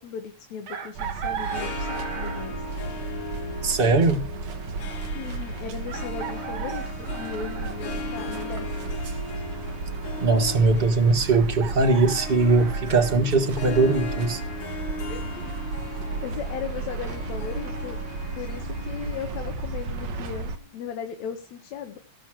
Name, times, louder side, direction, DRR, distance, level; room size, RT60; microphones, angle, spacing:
voice 1, 0.0-2.7 5.1-8.9 13.7-13.8 15.1-15.5 16.2-18.0 18.4-22.0, left 7 dB, 70° left, 2.6 m, -37 dB
Chicken rooster, 0.7-2.6 4.3-4.4 5.9-7.8 11.3-13.1, right 8 dB, 85° right, 3.2 m, -36 dB
sound 1, 0.9-20.6, right 3 dB, 65° right, 2.6 m, -34 dB
Harp, 1.3-20.7, left 3 dB, 50° left, 2.2 m, -38 dB
voice 2, 3.6-4.2 10.2-14.4, right 3 dB, 40° right, 0.7 m, -20 dB
18.5 x 6.3 x 7.5 m
omnidirectional pair, 3.4 m